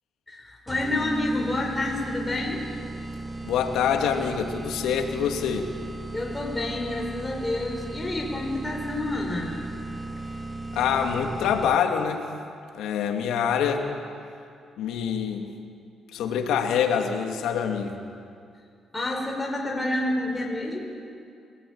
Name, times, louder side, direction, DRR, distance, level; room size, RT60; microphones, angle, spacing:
voice 1, 0.3-2.7 6.1-9.6 18.9-20.8, left 1 dB, 15° left, -1 dB, 5.0 m, -28 dB
sound 1, 0.7-12.1, right 2 dB, 20° right, 0.9 m, -36 dB
voice 2, 3.4-5.7 10.7-12.2 12.7-13.9 14.8-15.5 16.1-18.0, left 7 dB, 85° left, 4 dB, 2.5 m, -25 dB
26.5 x 17.5 x 8.8 m, 2.4 s
cardioid pair, 90°, 0 cm